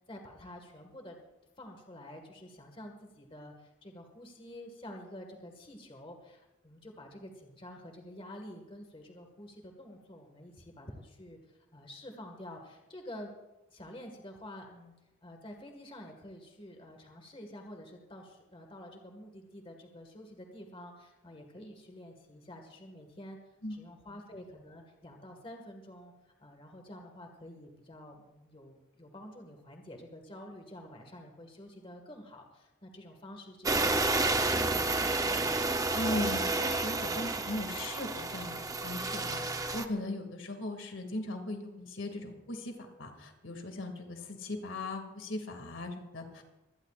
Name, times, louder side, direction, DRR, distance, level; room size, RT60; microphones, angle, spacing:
voice 1, 0.1-1.2 1.6-13.3 13.7-14.9 15.2-23.4 23.7-35.1, left 1 dB, 30° left, 3 dB, 1.8 m, -49 dB
sound 1, 33.6-39.8, right 2 dB, 20° right, 0.7 m, -30 dB
voice 2, 35.9-46.4, left 2 dB, 75° left, 4 dB, 2.3 m, -38 dB
24.0 x 17.5 x 2.5 m, 0.99 s
head